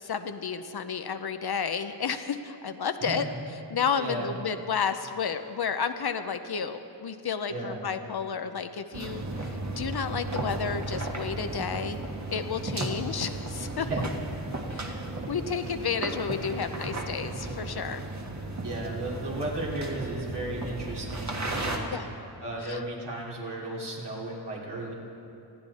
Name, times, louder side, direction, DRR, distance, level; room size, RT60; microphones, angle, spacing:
voice 1, 0.0-3.3 3.7-9.2 9.8-12.0 12.3-13.9 14.7-15.0 15.3-18.0 21.9-22.1 22.6-22.8, left 6 dB, 65° left, 9 dB, 0.7 m, -31 dB
voice 2, 4.0-4.3 7.5-7.8 13.8-14.1 18.6-21.9 22.4-24.9, right 1 dB, 70° right, -4 dB, 3.2 m, -34 dB
sound 1, 8.9-21.8, right 2 dB, 40° right, 1.5 m, -35 dB
19.0 x 15.0 x 4.2 m, 2.7 s
wide cardioid pair, 95°, 42 cm